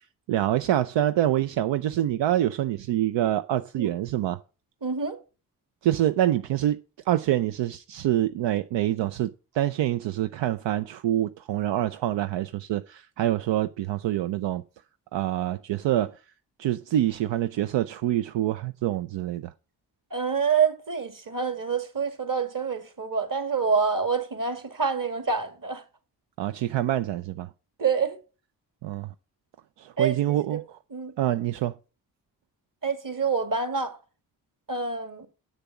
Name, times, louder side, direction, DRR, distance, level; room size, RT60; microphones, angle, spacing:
voice 1, 0.3-4.4 5.8-6.8 7.1-14.6 15.1-16.1 16.6-19.5 26.4-27.5 28.8-29.1 29.8-30.6 31.2-31.7, right 12 dB, 80° right, 0.5 m, -26 dB
voice 2, 4.8-5.2 20.1-25.8 27.8-28.2 30.0-30.6 30.9-31.1 32.8-34.0 34.7-35.3, right 5 dB, 45° right, 2.1 m, -27 dB
7.1 x 6.7 x 6.0 m
supercardioid pair, 40°, 44 cm